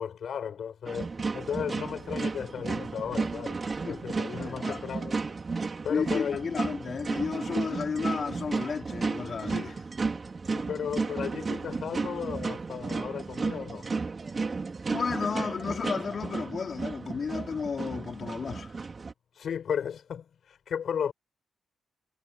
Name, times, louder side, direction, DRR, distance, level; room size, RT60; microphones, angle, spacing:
voice 1, 0.0-3.6 3.9-5.2 5.8-6.4 10.5-13.9 19.3-21.1, left 8 dB, 70° left, 6.7 m, -34 dB
sound 1, 0.9-19.1, right 4 dB, 40° right, 4.5 m, -33 dB
voice 2, 4.4-4.9 5.9-9.9 14.9-18.7, left 5 dB, 55° left, 3.7 m, -33 dB
cardioid pair, 75°, 0 cm